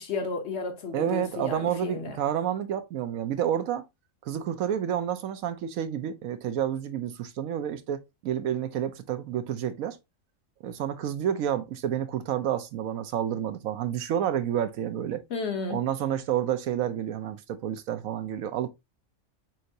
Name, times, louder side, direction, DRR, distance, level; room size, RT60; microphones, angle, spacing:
voice 1, 0.0-2.2 15.3-15.8, left 4 dB, 55° left, 1.0 m, -33 dB
voice 2, 0.9-3.8 4.2-10.0 10.6-15.2 15.7-18.7, right 10 dB, 80° right, 1.0 m, -29 dB
4.4 x 3.9 x 2.6 m
omnidirectional pair, 1.4 m